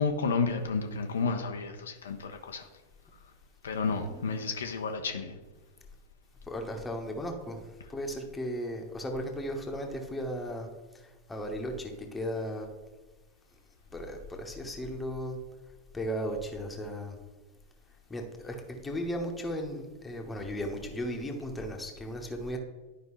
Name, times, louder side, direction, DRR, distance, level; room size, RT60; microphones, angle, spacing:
voice 1, 0.0-2.7 3.6-5.4, left 4 dB, 65° left, 5 dB, 0.6 m, -31 dB
voice 2, 3.8-4.6 6.4-10.7 10.9-12.7 13.9-15.4 15.9-17.2 18.1-22.6, equal, 10° left, 2 dB, 1.1 m, -36 dB
11.0 x 5.1 x 3.2 m, 1.2 s
figure-of-eight pair, 90°, 0 cm